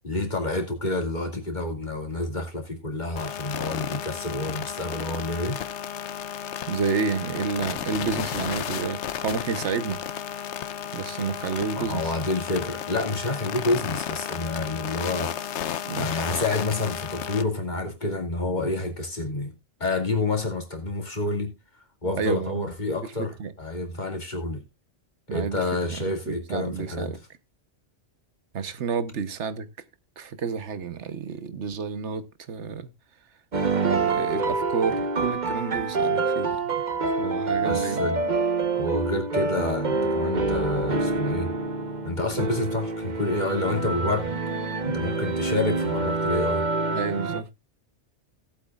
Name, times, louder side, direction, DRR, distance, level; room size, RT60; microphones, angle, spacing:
voice 1, 0.0-5.6 11.8-15.3 15.9-19.5 19.8-21.5 22.0-24.6 25.3-27.2 37.6-38.2 38.7-41.5 42.0-44.4 44.8-46.6, left 2 dB, 40° left, 2.4 m, -28 dB
sound 1, 3.2-17.4, left 9 dB, 80° left, 1.0 m, -33 dB
voice 2, 6.7-10.0 10.9-12.1 15.9-16.1 22.2-22.7 23.0-23.5 25.3-25.6 25.9-27.2 28.5-29.7 30.2-32.9 33.9-36.7 37.1-38.1 46.9-47.5, right 5 dB, 80° right, 1.3 m, -30 dB
sound 2, 33.5-47.4, right 3 dB, 40° right, 1.2 m, -26 dB
18.0 x 8.1 x 2.3 m
omnidirectional pair, 1.2 m